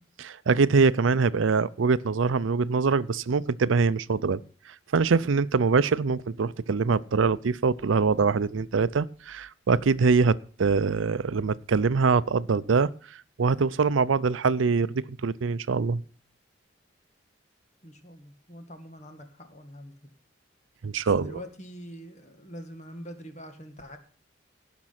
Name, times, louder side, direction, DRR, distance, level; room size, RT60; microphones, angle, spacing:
voice 1, 0.2-4.4 4.9-12.9 13.4-16.0 20.8-21.3, right 4 dB, 85° right, 18 dB, 0.5 m, -23 dB
voice 2, 17.8-19.9 21.1-24.0, equal, 35° left, 7 dB, 1.9 m, -44 dB
17.0 x 6.0 x 5.8 m, 0.41 s
head